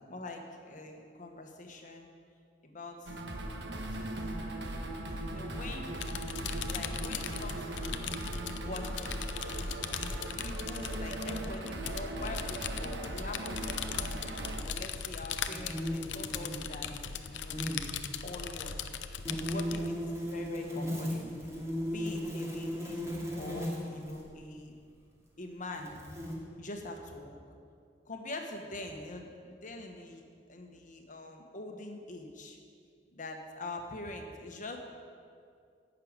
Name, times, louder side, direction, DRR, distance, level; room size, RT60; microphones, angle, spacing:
voice 1, 0.0-2.1 2.6-3.1 4.0-4.4 5.3-6.0 6.7-8.0 8.6-9.2 10.1-14.2 14.6-16.9 17.3-17.7 18.2-18.7 19.3-21.3 21.9-24.7 25.4-26.0 26.6-27.4 28.1-32.6 33.1-34.8, left 2 dB, 45° left, 3 dB, 1.4 m, -44 dB
sound 1, 3.1-14.6, right 1 dB, 75° right, 1.3 m, -38 dB
sound 2, 5.9-19.9, left 7 dB, 90° left, 0.6 m, -40 dB
sound 3, 15.5-17.0 17.3-17.8 19.2-24.3 25.1-25.2 25.7-26.4, equal, 15° right, 2.5 m, -36 dB
11.0 x 6.7 x 9.0 m, 2.3 s
head